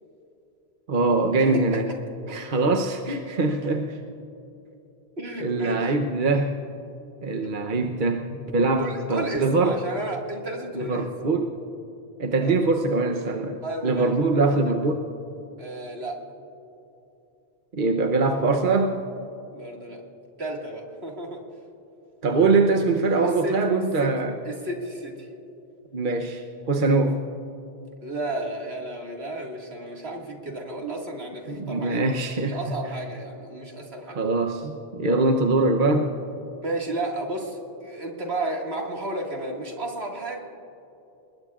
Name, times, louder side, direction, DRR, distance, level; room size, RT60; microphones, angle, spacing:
voice 1, 0.9-1.9 2.3-4.0 5.4-6.6 7.2-9.8 10.7-11.6 12.2-15.0 17.7-19.0 22.2-24.4 25.9-27.2 31.5-32.6 34.2-36.1, right 3 dB, 55° right, 3 dB, 1.0 m, -23 dB
voice 2, 5.2-5.8 8.8-11.1 12.4-12.5 13.6-14.1 14.6-14.7 15.6-16.1 19.5-20.0 20.4-21.4 23.2-23.5 24.0-24.1 24.4-25.3 28.0-32.1 32.4-34.3 36.6-40.4, right 1 dB, 70° right, 0 dB, 2.3 m, -32 dB
29.5 x 20.0 x 2.4 m, 2.8 s
omnidirectional pair, 1.1 m